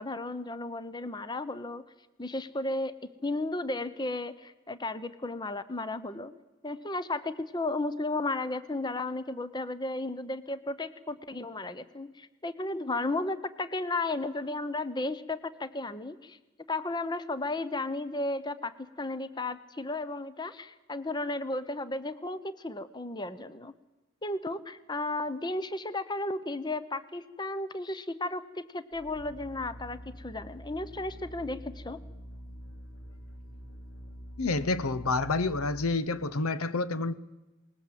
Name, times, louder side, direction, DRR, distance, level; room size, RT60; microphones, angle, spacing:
voice 1, 0.0-1.8 2.2-2.9 3.2-6.3 6.6-16.4 16.7-23.7 24.2-32.0, left 2 dB, 20° left, 0.8 m, -34 dB
sound 1, 28.9-36.0, equal, 65° left, 4.0 m, -46 dB
voice 2, 34.4-37.1, left 3 dB, 90° left, 0.9 m, -28 dB
20.5 x 20.0 x 7.5 m
head